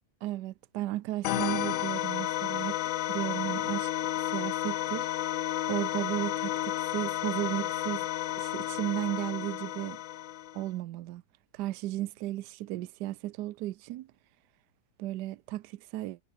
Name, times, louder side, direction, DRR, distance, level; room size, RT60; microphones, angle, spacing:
voice 1, 0.2-2.8 3.1-5.1 5.7-8.1 8.4-10.0 10.5-11.2 11.5-14.1 15.0-16.2, right 15 dB, 70° right, 1.1 m, -34 dB
sound 1, 1.2-10.7, left 13 dB, 80° left, 0.7 m, -32 dB
omnidirectional pair, 2.1 m